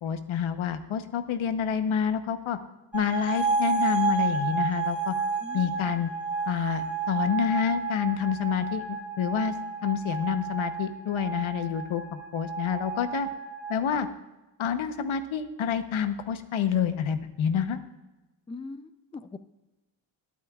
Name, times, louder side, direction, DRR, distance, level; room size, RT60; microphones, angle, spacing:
voice 1, 0.0-2.6 2.9-5.1 5.5-6.1 6.5-9.5 9.8-13.3 13.7-14.1 14.6-17.8, left 8 dB, 85° left, 10 dB, 0.9 m, -28 dB
sound 1, 2.9-14.0, right 4 dB, 5° right, 3.4 m, -31 dB
voice 2, 18.5-19.4, left 3 dB, 15° left, 13 dB, 0.4 m, -41 dB
20.0 x 8.5 x 2.3 m, 1.0 s
cardioid pair, 85°, 46 cm